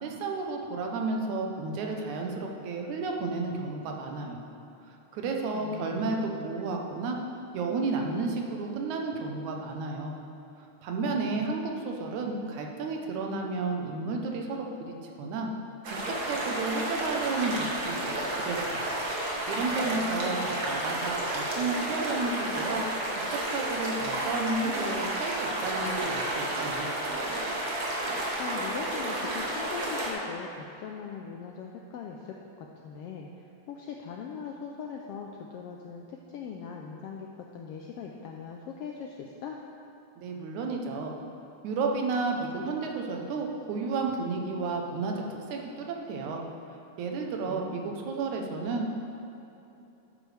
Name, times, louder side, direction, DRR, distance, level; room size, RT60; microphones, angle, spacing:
voice 1, 0.0-4.4 4.9-7.2 7.5-10.1 10.8-15.5 15.9-18.8 19.5-22.8 23.1-26.9 40.2-41.1 41.6-46.4 47.0-49.0, right 3 dB, 85° right, 1 dB, 2.3 m, -32 dB
voice 2, 5.5-6.1 11.0-11.5 19.8-20.6 28.4-39.6 47.5-47.9, left 6 dB, 90° left, 1 dB, 1.3 m, -41 dB
sound 1, 15.8-30.1, right 1 dB, 50° right, 1.2 m, -31 dB
11.5 x 8.9 x 3.3 m, 2.9 s
omnidirectional pair, 3.3 m